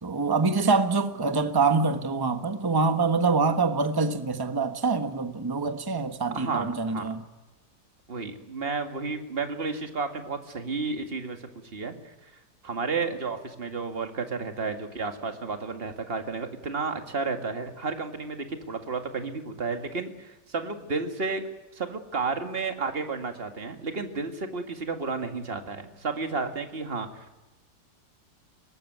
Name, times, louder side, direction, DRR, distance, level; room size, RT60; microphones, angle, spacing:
voice 1, 0.0-7.2, right 4 dB, 15° right, 1.2 m, -25 dB
voice 2, 6.3-7.1 8.1-11.4 11.7-12.3 12.6-21.4 21.7-27.4, right 4 dB, 35° right, 2.2 m, -32 dB
23.5 x 19.0 x 9.4 m
omnidirectional pair, 1.9 m